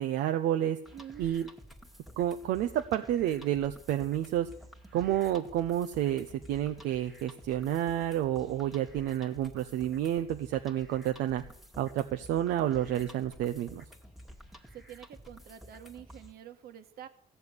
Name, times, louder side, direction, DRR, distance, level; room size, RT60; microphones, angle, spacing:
voice 1, 0.0-0.8 1.2-1.5 2.2-4.5 4.9-11.4 11.8-13.8, right 12 dB, 80° right, 6 dB, 0.8 m, -30 dB
sound 1, 0.8-16.3, equal, ahead, 1.6 m, -51 dB
voice 2, 0.9-1.4 14.7-17.1, right 10 dB, 65° right, 8 dB, 1.5 m, -47 dB
15.5 x 7.0 x 9.7 m, 0.68 s
cardioid pair, 110°, 17 cm